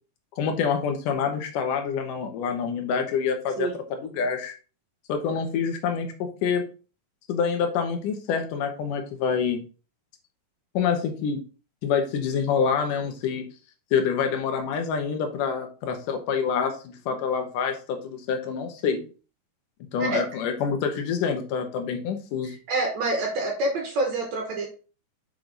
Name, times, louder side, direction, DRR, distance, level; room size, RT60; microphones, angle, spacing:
voice 1, 0.4-4.5 5.1-6.6 7.3-9.6 10.7-11.4 11.8-13.5 13.9-19.0 19.9-22.6, left 6 dB, 65° left, 5 dB, 2.5 m, -26 dB
voice 2, 22.4-24.7, right 2 dB, 65° right, 2 dB, 1.9 m, -27 dB
6.5 x 5.7 x 3.9 m, 0.35 s
omnidirectional pair, 4.5 m